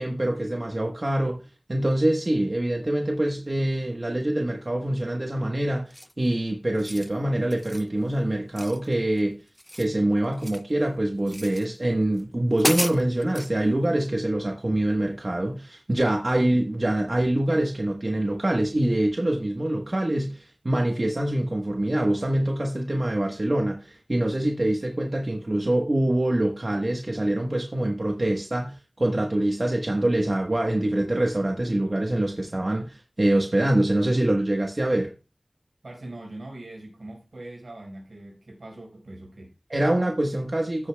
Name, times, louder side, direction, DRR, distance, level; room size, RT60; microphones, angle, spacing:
voice 1, 0.0-1.4 1.7-9.4 9.7-35.1 39.7-40.9, right 1 dB, 45° right, 1.2 m, -25 dB
sound 1, 5.9-6.3 6.7-7.1 7.5-7.9 8.6-9.2 9.5-10.7 11.3-11.7 12.2-12.3 12.6-13.5, equal, 10° left, 0.5 m, -32 dB
voice 2, 35.8-39.5, right 1 dB, 80° right, 4.6 m, -41 dB
15.0 x 8.3 x 2.3 m
wide cardioid pair, 60°, 0 cm